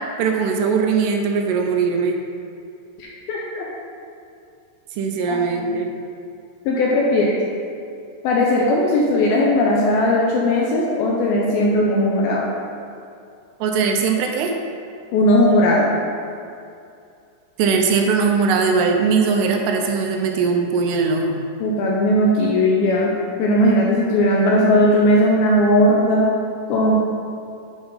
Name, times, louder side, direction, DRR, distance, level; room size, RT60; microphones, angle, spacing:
voice 1, 0.2-2.2 5.0-5.9 13.6-14.5 17.6-21.4, right 5 dB, 80° right, 2 dB, 2.6 m, -20 dB
voice 2, 3.0-3.7 5.3-5.8 6.7-7.3 8.2-12.5 15.1-15.9 21.6-23.1 23.4-26.3 26.7-27.0, left 1 dB, 80° left, -3 dB, 2.3 m, -18 dB
8.8 x 5.9 x 3.9 m, 2.4 s
omnidirectional pair, 5.0 m